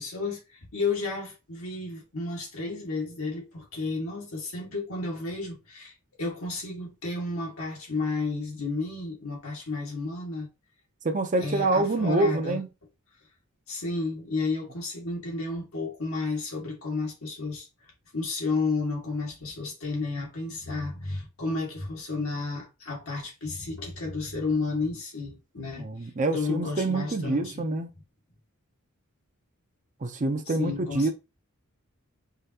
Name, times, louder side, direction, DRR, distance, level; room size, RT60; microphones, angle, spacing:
voice 1, 0.0-10.5 11.4-12.6 13.7-17.7 18.1-27.7 30.6-31.1, left 3 dB, 70° left, 1.7 m, -32 dB
voice 2, 11.0-12.7 25.6-27.9 30.0-31.1, right 2 dB, 35° right, 0.6 m, -26 dB
5.0 x 2.8 x 2.8 m
head